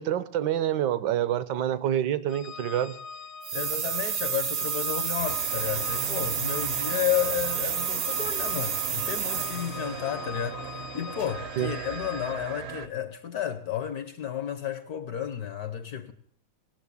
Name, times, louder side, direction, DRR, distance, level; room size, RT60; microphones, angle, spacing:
voice 1, 0.0-3.0 11.6-11.7, right 11 dB, 70° right, 1.2 m, -27 dB
Organ, 2.3-12.7, left 5 dB, 85° left, 1.5 m, -42 dB
sound 1, 3.4-9.9, right 8 dB, 85° right, 0.6 m, -30 dB
voice 2, 3.5-16.1, left 11 dB, 60° left, 1.0 m, -32 dB
sound 2, 5.2-12.9, right 6 dB, 50° right, 0.7 m, -39 dB
18.5 x 6.5 x 8.3 m
omnidirectional pair, 2.2 m